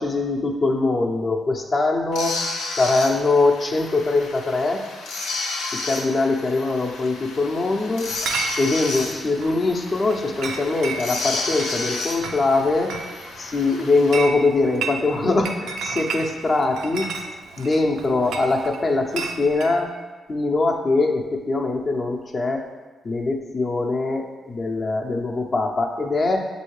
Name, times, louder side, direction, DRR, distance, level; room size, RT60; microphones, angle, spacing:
voice 1, 0.0-2.4 2.7-4.8 5.7-8.1 8.6-12.9 13.4-17.0 17.6-19.9 20.3-22.7 23.0-26.5, left 3 dB, 45° left, 1 dB, 0.6 m, -22 dB
sound 1, 2.1-14.2, left 3 dB, 90° left, 0.5 m, -32 dB
Chatter / Chink clink, 8.1-19.8, right 4 dB, 80° right, 0.4 m, -33 dB
6.3 x 2.7 x 3.1 m, 1.3 s
supercardioid pair, 55°, 0 cm